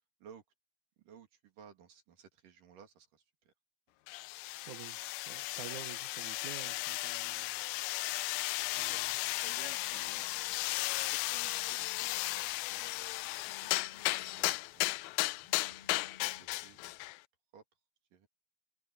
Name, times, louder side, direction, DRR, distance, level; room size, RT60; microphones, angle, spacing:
voice 1, 1.0-3.5 8.0-8.1 8.9-9.0 9.4-10.3 11.0-14.9 15.5-15.6 16.0-16.8 17.5-17.6 18.1-18.3, right 7 dB, 55° right, 3.8 m, -57 dB
sound 1, 4.1-17.2, left 21 dB, 85° left, 2.2 m, -35 dB
voice 2, 4.6-8.0 8.6-9.1, right 10 dB, 75° right, 1.8 m, -50 dB
Telephone, 8.6-17.1, left 6 dB, 70° left, 6.2 m, -61 dB
omnidirectional pair, 4.8 m